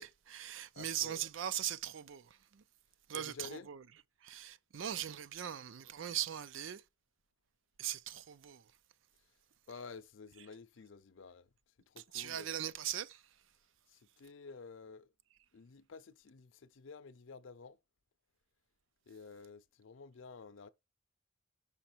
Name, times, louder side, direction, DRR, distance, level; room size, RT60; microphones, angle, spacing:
voice 1, 0.0-2.6 3.1-3.8 4.2-6.8 7.8-8.7 12.0-13.4, right 10 dB, 80° right, 0.5 m, -40 dB
voice 2, 0.7-1.2 3.1-3.7 9.7-11.5 11.9-12.5 13.9-15.1 15.5-17.8 19.1-20.7, left 4 dB, 80° left, 0.5 m, -51 dB
5.7 x 5.0 x 4.4 m
head